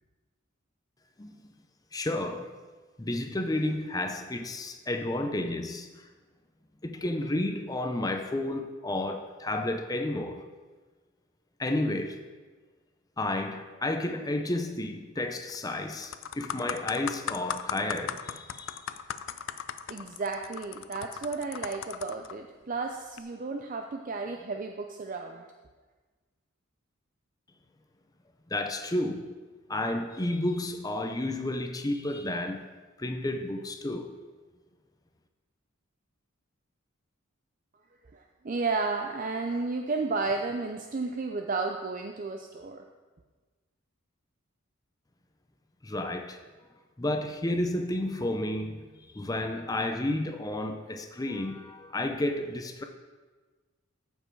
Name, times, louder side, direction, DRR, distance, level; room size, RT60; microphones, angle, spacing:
voice 1, 1.9-2.6 3.0-6.0 6.8-10.4 11.6-12.2 13.2-18.9 28.5-29.3 29.7-32.7 33.0-34.1 45.8-46.4 47.0-48.9 49.1-52.8, left 1 dB, 15° left, 0.6 m, -31 dB
sound 1, 15.3-15.6 15.9-22.3 23.0-23.2, left 8 dB, 65° left, 0.4 m, -37 dB
voice 2, 19.9-25.5 38.1-42.8, right 3 dB, 40° right, 0.5 m, -33 dB
14.5 x 5.5 x 4.6 m
head